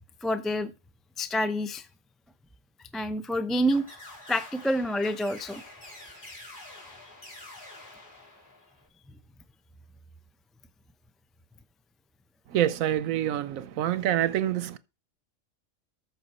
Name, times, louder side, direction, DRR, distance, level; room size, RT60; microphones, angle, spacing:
voice 1, 0.2-0.7 1.2-1.9 2.9-3.8 4.3-5.6, equal, ahead, 0.4 m, -27 dB
sound 1, 3.7-8.9, left 2 dB, 40° left, 3.7 m, -47 dB
voice 2, 12.5-14.8, right 11 dB, 85° right, 1.1 m, -26 dB
14.0 x 6.1 x 4.2 m
omnidirectional pair, 1.4 m